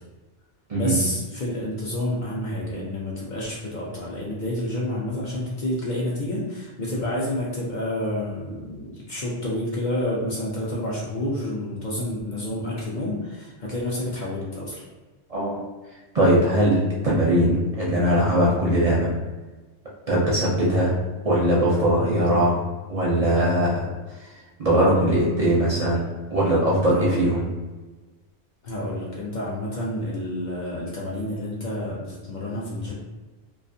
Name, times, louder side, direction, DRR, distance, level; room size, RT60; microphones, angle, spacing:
voice 1, 0.7-14.8 26.9-27.3 28.6-32.9, left 1 dB, 55° left, -5 dB, 0.6 m, -29 dB
voice 2, 15.3-15.6 16.1-19.1 20.1-21.0 21.2-22.6 22.9-23.9 24.6-26.0 26.3-27.4, right 1 dB, 45° right, -6 dB, 0.5 m, -20 dB
2.4 x 2.4 x 2.5 m, 1.2 s
omnidirectional pair, 1.1 m